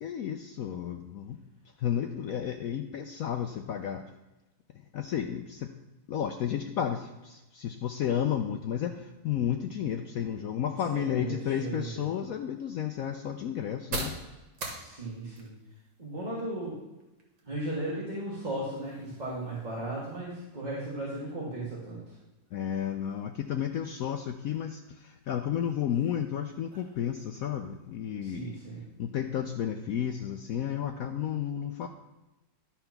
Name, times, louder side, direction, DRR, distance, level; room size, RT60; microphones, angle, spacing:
voice 1, 0.0-1.4 1.8-4.0 4.9-5.7 6.1-14.1 22.5-28.6 29.0-31.9, left 9 dB, 85° left, 6 dB, 0.7 m, -32 dB
voice 2, 10.8-12.0 14.8-15.5 16.0-16.7 17.4-22.0 28.2-28.8, right 1 dB, 25° right, -7 dB, 1.8 m, -36 dB
sound 1, 11.8-29.4, right 2 dB, 75° right, 2.2 m, -47 dB
11.0 x 4.5 x 5.8 m, 1.0 s
omnidirectional pair, 2.1 m